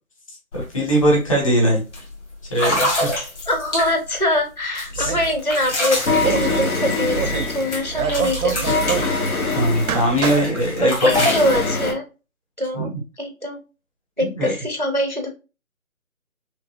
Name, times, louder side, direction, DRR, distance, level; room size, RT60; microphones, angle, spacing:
sound 1, 0.5-0.7 1.0-1.3 1.9-2.0 2.5-4.2 4.8-7.5 7.7-9.8 10.2-11.6, left 1 dB, 55° left, 2.2 m, -26 dB
voice 1, 0.5-1.8 2.5-3.3 5.0-5.1 9.5-11.1 12.7-13.0 14.2-14.5, equal, 25° left, -2 dB, 1.3 m, -20 dB
voice 2, 3.5-8.7 10.8-12.0 12.6-12.9 13.2-13.6 14.2-15.3, equal, 35° right, 4 dB, 0.4 m, -23 dB
sound 2, 4.9-5.4 6.1-6.7 7.1-7.6 7.9-9.1 9.8-10.5, right 6 dB, 90° right, 0.6 m, -26 dB
sound 3, 5.2-11.9, left 3 dB, 85° left, 1.9 m, -24 dB
5.8 x 2.7 x 2.2 m, 0.30 s
figure-of-eight pair, 165°, 42 cm